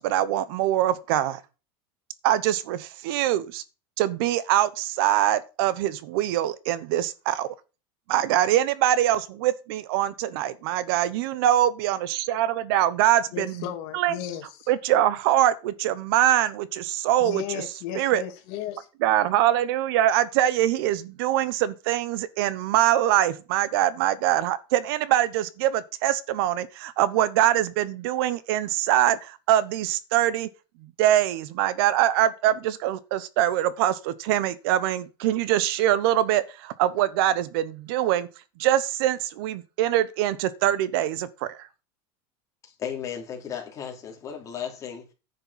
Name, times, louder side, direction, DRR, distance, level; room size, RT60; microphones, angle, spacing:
voice 1, 0.0-1.4 2.2-3.6 4.0-7.5 8.1-13.6 13.9-14.1 14.7-17.4 17.9-18.2 19.0-30.5 31.0-38.3 38.6-41.7, right 12 dB, 60° right, 0.9 m, -23 dB
voice 2, 13.3-14.7 17.2-18.9, left 10 dB, 50° left, 2.1 m, -35 dB
voice 3, 42.6-45.1, left 8 dB, 25° left, 2.9 m, -35 dB
10.0 x 6.7 x 5.6 m
supercardioid pair, 165°, 14 cm